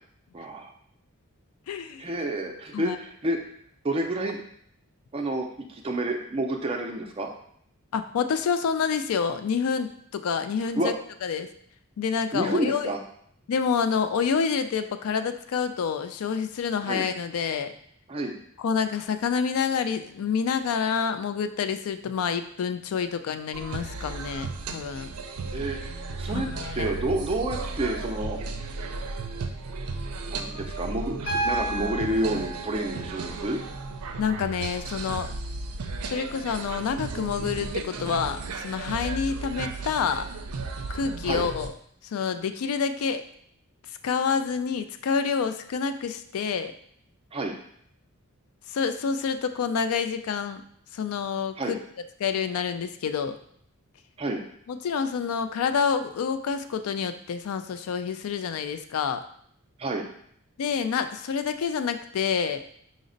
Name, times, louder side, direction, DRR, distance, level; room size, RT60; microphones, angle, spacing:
voice 1, 0.3-0.7 2.0-3.4 3.8-4.4 5.1-7.3 10.8-10.9 12.3-13.0 16.8-17.1 18.1-18.3 25.5-25.8 26.2-26.5 26.7-28.4 30.3-33.6 41.2-41.4 47.3-47.5 51.6-51.7 54.2-54.4 59.8-60.0, right 1 dB, 25° right, 3 dB, 0.4 m, -29 dB
voice 2, 1.7-2.1 2.7-3.0 7.9-10.9 11.2-11.5 12.0-12.9 13.5-17.7 18.6-25.1 26.3-26.9 34.2-35.3 36.0-40.3 40.9-41.7 42.0-43.2 44.0-46.7 48.7-50.6 50.9-51.8 52.2-53.4 54.7-59.2 60.6-62.6, left 6 dB, 75° left, 10 dB, 0.3 m, -28 dB
sound 1, 23.5-41.7, right 3 dB, 85° right, 0.4 m, -35 dB
Piano, 31.3-35.3 36.8-36.9, right 1 dB, 55° left, 0.9 m, -34 dB
5.0 x 2.0 x 3.8 m, 0.67 s
head